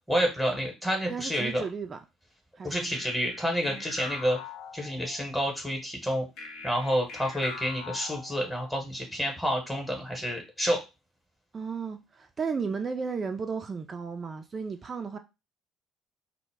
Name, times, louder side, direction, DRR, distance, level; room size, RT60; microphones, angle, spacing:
voice 1, 0.1-1.6 2.6-4.4 4.7-6.3 6.6-10.8, equal, ahead, 0.9 m, -29 dB
voice 2, 1.0-2.0 2.6-3.0 3.7-3.8 11.5-15.2, right 5 dB, 30° right, 0.3 m, -34 dB
sound 1, 2.9-5.4 6.4-8.9, left 5 dB, 60° left, 0.5 m, -43 dB
2.1 x 2.0 x 3.3 m
figure-of-eight pair, 55°, 0 cm